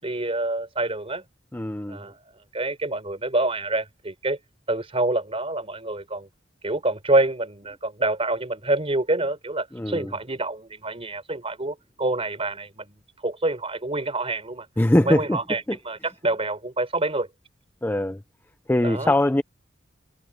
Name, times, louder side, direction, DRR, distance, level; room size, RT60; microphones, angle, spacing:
voice 1, 0.0-1.2 1.9-2.2 2.5-4.4 4.7-6.3 6.6-13.0 13.2-14.7 15.0-17.3 18.8-19.1, right 2 dB, 30° right, 4.0 m, -27 dB
voice 2, 1.5-2.0 9.7-10.1 14.8-15.4 15.7-15.8 17.8-18.2 18.7-19.4, left 1 dB, 10° left, 0.5 m, -22 dB
head